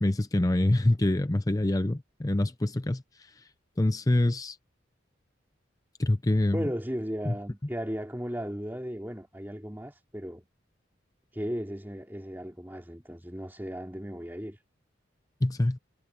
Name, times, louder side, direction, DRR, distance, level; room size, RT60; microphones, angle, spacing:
voice 1, 0.0-3.5 3.8-4.6 6.0-6.6 7.2-7.3 15.4-15.8, left 1 dB, 20° left, 0.5 m, -26 dB
voice 2, 6.5-10.5 11.3-14.6, equal, 10° right, 2.9 m, -36 dB
head